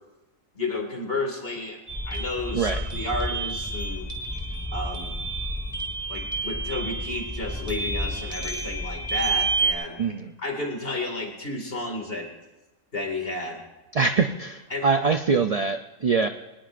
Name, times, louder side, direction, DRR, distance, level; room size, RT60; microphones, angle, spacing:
voice 1, 0.5-4.1 4.7-5.1 6.1-10.0 10.4-12.3 12.9-13.6 14.7-14.9, left 2 dB, 45° left, 2 dB, 2.5 m, -32 dB
sound 1, 1.9-9.7, right 2 dB, 10° left, 2.5 m, -29 dB
voice 2, 10.0-10.3 13.9-16.3, right 5 dB, 55° right, 7 dB, 0.4 m, -24 dB
23.0 x 19.0 x 2.5 m, 1.0 s
omnidirectional pair, 1.4 m